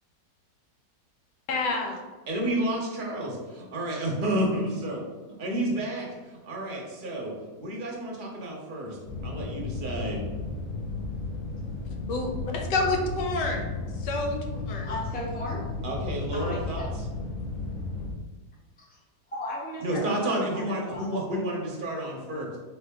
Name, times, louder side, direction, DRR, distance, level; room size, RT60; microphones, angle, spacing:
voice 1, 1.5-2.0 12.1-14.9, left 2 dB, 90° left, 2 dB, 1.3 m, -29 dB
voice 2, 2.3-5.0 5.4-6.1 6.4-7.3 7.6-9.0 9.2-10.2 15.8-16.9 19.8-22.6, right 1 dB, 40° right, -2 dB, 0.8 m, -30 dB
sound 1, 9.1-18.1, left 3 dB, 60° left, 0.8 m, -34 dB
voice 3, 14.8-15.7 16.3-16.9 18.9-19.0 19.3-21.6, left 1 dB, 10° left, -5 dB, 0.5 m, -37 dB
3.6 x 3.4 x 3.5 m, 1.3 s
omnidirectional pair, 1.8 m